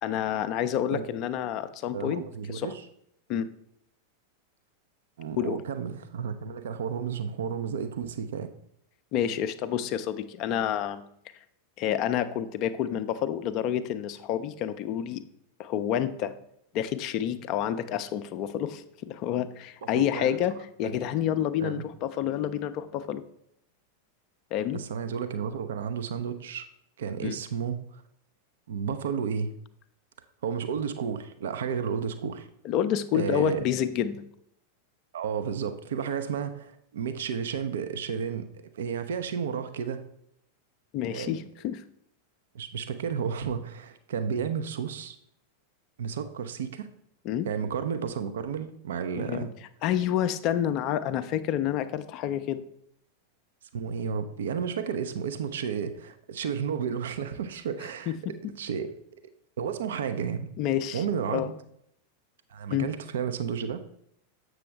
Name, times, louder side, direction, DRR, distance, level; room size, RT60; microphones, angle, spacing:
voice 1, 0.0-2.2 2.5-2.7 3.3-3.5 5.4-5.6 9.1-11.0 11.8-15.2 15.6-16.3 16.7-23.2 24.5-24.8 27.2-27.4 32.6-34.3 40.9-41.8 47.2-47.5 49.2-49.5 49.8-52.6 58.1-58.2 60.6-61.0 61.3-61.5 62.7-62.9, left 10 dB, 40° left, 11 dB, 0.4 m, -29 dB
voice 2, 1.9-2.8 5.2-8.5 19.8-20.4 20.8-20.9 21.6-21.8 24.7-26.6 27.0-28.0 28.7-29.5 30.4-32.5 33.1-33.6 35.1-38.5 38.7-40.1 41.1-41.4 42.5-45.2 46.0-46.9 47.4-49.5 53.7-58.9 59.6-60.5 60.9-61.5 62.5-63.8, right 7 dB, 60° right, 10 dB, 0.5 m, -32 dB
7.5 x 6.2 x 3.3 m, 0.72 s
figure-of-eight pair, 90°, 0 cm